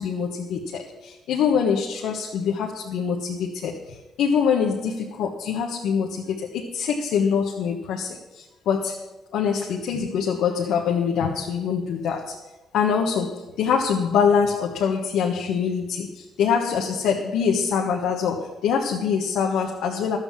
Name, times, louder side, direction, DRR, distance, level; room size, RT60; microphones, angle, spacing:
voice 1, 0.0-9.0 9.3-12.4 12.7-20.2, left 6 dB, 85° left, 0 dB, 1.3 m, -24 dB
12.5 x 8.0 x 7.4 m, 1.1 s
cardioid pair, 90°, 0 cm